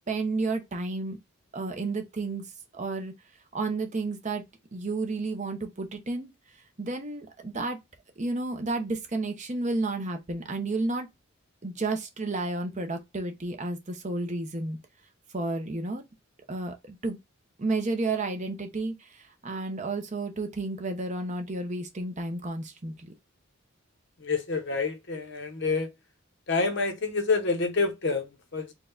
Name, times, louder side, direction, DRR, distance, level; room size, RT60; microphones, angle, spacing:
voice 1, 0.1-1.2 1.5-2.4 2.7-3.1 3.5-4.4 4.7-6.3 6.8-7.8 8.2-11.1 11.6-14.8 15.3-16.0 16.5-17.2 17.6-23.1, right 3 dB, 35° right, 0.8 m, -31 dB
voice 2, 24.2-25.9 26.5-28.7, left 4 dB, 55° left, 0.8 m, -28 dB
4.4 x 2.3 x 3.8 m
head